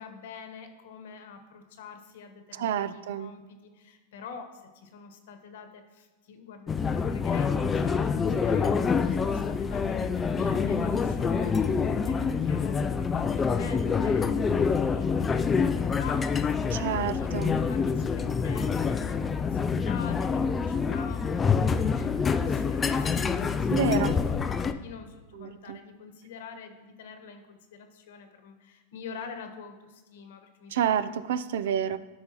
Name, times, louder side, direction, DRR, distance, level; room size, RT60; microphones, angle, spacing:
voice 1, 0.0-16.9 17.2-23.8 24.1-30.7, left 6 dB, 75° left, 6 dB, 1.2 m, -46 dB
voice 2, 2.5-3.3 16.7-17.6 23.7-24.2 25.3-25.8 30.7-32.0, right 9 dB, 75° right, 14 dB, 0.4 m, -29 dB
sound 1, 6.7-24.7, left 5 dB, 15° left, 0.3 m, -26 dB
12.0 x 5.5 x 2.9 m, 1.3 s
supercardioid pair, 150°, 0 cm